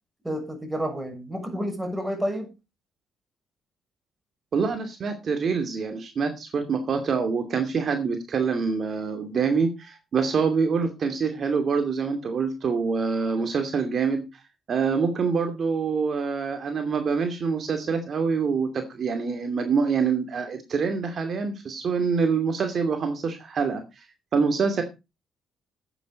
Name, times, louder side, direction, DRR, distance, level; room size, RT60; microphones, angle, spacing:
voice 1, 0.2-2.5, equal, 10° right, 6.8 m, -30 dB
voice 2, 4.5-14.2 14.7-24.1 24.3-24.8, right 5 dB, 50° right, 2.6 m, -25 dB
13.0 x 9.2 x 5.3 m
cardioid pair, 90°, 0 cm